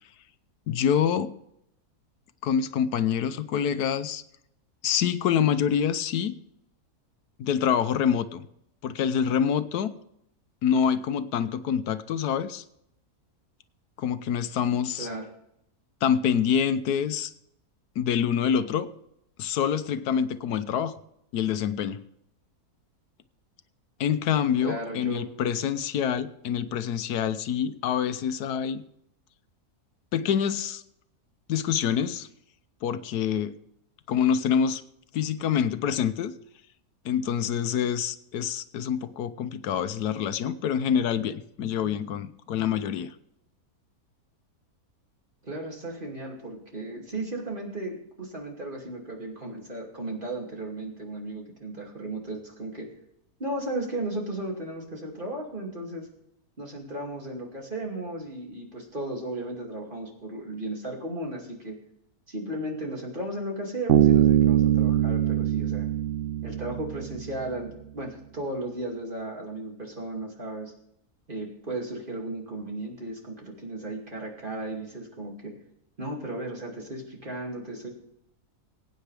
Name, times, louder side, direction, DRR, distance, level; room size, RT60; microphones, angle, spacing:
voice 1, 0.7-1.3 2.4-4.2 4.8-6.4 7.4-8.4 8.8-9.9 10.6-12.6 14.0-15.1 16.0-17.3 18.0-18.9 19.4-20.9 21.3-22.0 24.0-28.8 30.1-30.8 31.5-32.3 32.8-33.5 34.1-34.8 35.1-36.3 37.0-43.1, left 8 dB, 90° left, 12 dB, 1.3 m, -26 dB
voice 2, 24.6-25.3 45.4-52.9 53.4-56.1 56.6-61.8 62.3-65.9 66.4-70.7 71.3-75.5 76.0-77.9, right 1 dB, 35° right, -1 dB, 2.7 m, -35 dB
Bass guitar, 63.9-67.3, right 11 dB, 85° right, 0.5 m, -22 dB
22.0 x 9.2 x 3.4 m, 0.77 s
omnidirectional pair, 1.6 m